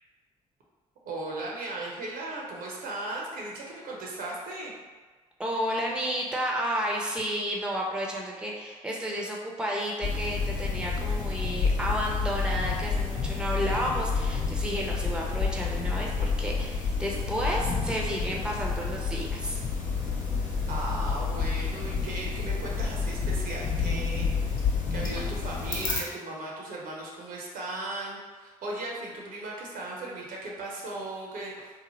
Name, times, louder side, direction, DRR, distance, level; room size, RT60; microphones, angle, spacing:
voice 1, 1.0-4.7 20.7-24.3 24.9-31.7, right 2 dB, 65° right, -3 dB, 0.7 m, -37 dB
voice 2, 5.4-19.6, equal, 5° right, -2 dB, 0.6 m, -31 dB
sound 1, 10.0-26.0, left 5 dB, 60° left, 0.7 m, -29 dB
2.8 x 2.1 x 3.0 m, 1.4 s
hypercardioid pair, 45°, 16 cm